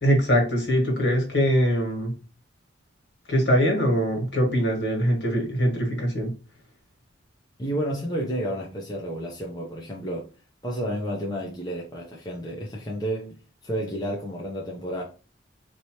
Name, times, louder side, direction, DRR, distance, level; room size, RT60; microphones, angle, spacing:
voice 1, 0.0-2.1 3.3-6.3, equal, 60° left, 1.9 m, -22 dB
voice 2, 7.6-10.3 10.6-15.0, equal, 20° left, 0.8 m, -31 dB
4.8 x 2.8 x 3.1 m
head